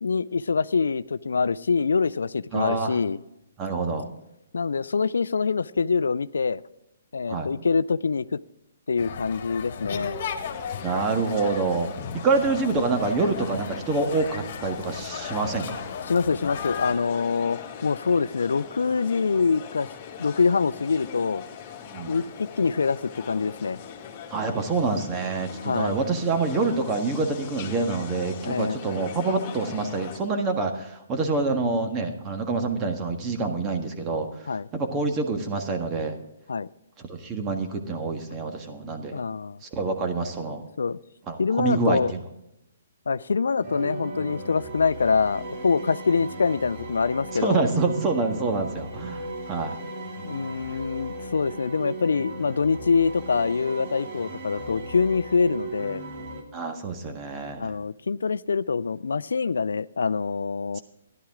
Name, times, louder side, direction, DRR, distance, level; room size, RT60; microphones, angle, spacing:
voice 1, 0.0-3.2 4.5-6.6 7.1-8.3 8.9-10.2 16.1-19.9 20.2-21.5 22.1-23.8 25.6-25.9 28.4-28.8 34.5-34.7 36.5-36.7 39.1-39.6 40.8-41.0 41.4-42.1 43.1-47.7 50.2-56.1 57.6-60.8, left 5 dB, 80° left, 18 dB, 0.3 m, -25 dB
voice 2, 2.5-3.0 3.6-4.1 7.3-7.5 10.8-11.9 12.2-15.9 21.9-22.1 24.3-34.3 34.7-36.2 37.0-39.2 39.6-40.6 41.3-42.2 47.3-49.7 56.5-57.7 60.7-60.8, right 3 dB, 25° right, 4 dB, 1.5 m, -26 dB
sound 1, 9.0-16.9, left 7 dB, 55° left, 1.6 m, -35 dB
sound 2, 10.4-30.2, left 7 dB, 30° left, 2.0 m, -41 dB
sound 3, 43.6-56.4, right 2 dB, 50° right, 2.8 m, -37 dB
14.0 x 11.0 x 3.6 m, 0.86 s
hypercardioid pair, 140°, 0 cm